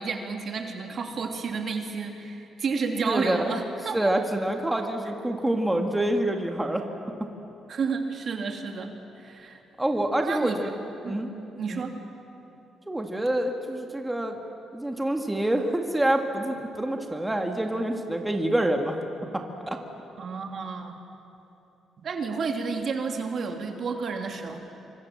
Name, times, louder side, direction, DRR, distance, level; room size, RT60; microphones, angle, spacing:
voice 1, 0.0-4.1 7.7-8.9 9.2-9.6 10.2-10.6 11.0-11.2 11.6-11.9 20.2-20.9 22.0-24.6, right 5 dB, 50° right, 3 dB, 2.9 m, -31 dB
voice 2, 3.1-3.5 3.9-6.8 9.8-10.7 11.1-11.3 11.7-11.8 12.9-14.4 14.7-19.0 19.3-19.8, right 1 dB, 10° right, 3 dB, 2.2 m, -26 dB
27.0 x 24.5 x 7.5 m, 2.8 s
cardioid pair, 90°, 0 cm